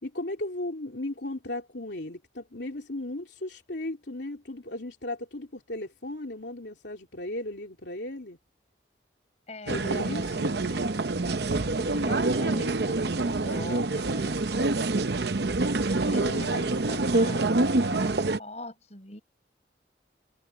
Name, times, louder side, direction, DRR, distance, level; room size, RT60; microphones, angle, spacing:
voice 1, 0.0-8.4 9.7-10.7 16.0-17.4, left 1 dB, 70° left, 3.0 m, -36 dB
voice 2, 9.5-10.9 11.2-15.0 16.0-19.2, left 2 dB, 35° left, 5.8 m, -44 dB
sound 1, 9.7-18.4, right 2 dB, 65° right, 0.8 m, -26 dB
head